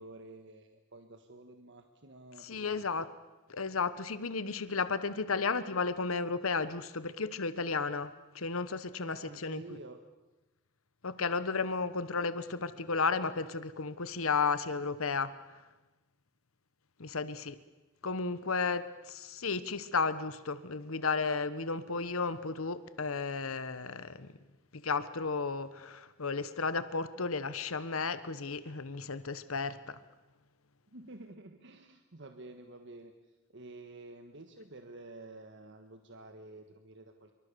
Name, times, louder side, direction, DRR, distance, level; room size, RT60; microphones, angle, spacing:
voice 1, 0.0-2.9 9.0-10.0 30.9-33.1 33.5-37.3, right 2 dB, 55° right, 6 dB, 1.5 m, -50 dB
voice 2, 2.4-3.1 3.5-9.6 11.0-15.3 17.0-17.6 18.0-24.3 24.7-30.0, left 4 dB, 75° left, 14 dB, 1.1 m, -33 dB
26.5 x 23.5 x 6.9 m, 1.1 s
head